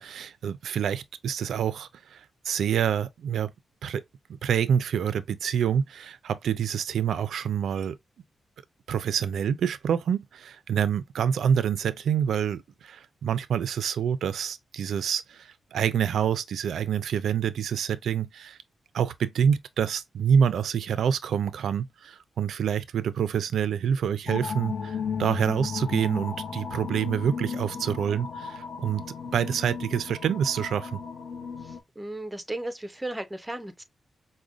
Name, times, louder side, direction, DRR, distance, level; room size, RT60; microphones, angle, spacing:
voice 1, 0.0-3.5 3.8-4.0 4.4-8.0 8.9-18.6 18.9-29.0 29.3-31.0, right 8 dB, 80° right, 0.3 m, -27 dB
sound 1, 24.3-31.8, left 6 dB, 55° left, 0.8 m, -35 dB
voice 2, 32.0-33.8, right 1 dB, 10° right, 0.5 m, -35 dB
4.9 x 2.1 x 2.4 m
wide cardioid pair, 155°, 0 cm